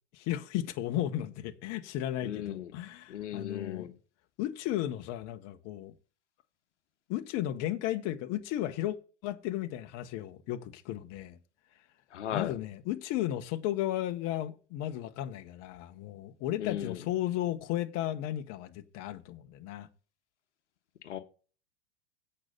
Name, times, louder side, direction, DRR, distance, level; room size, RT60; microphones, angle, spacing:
voice 1, 0.1-3.9 4.4-5.9 7.1-8.9 9.2-11.4 12.3-19.9, left 13 dB, 45° left, 1.2 m, -34 dB
voice 2, 2.2-2.7 3.1-4.0 12.1-12.5 16.6-17.0 21.0-21.2, left 11 dB, 80° left, 1.2 m, -36 dB
8.6 x 5.5 x 6.6 m
hypercardioid pair, 100°, 35 cm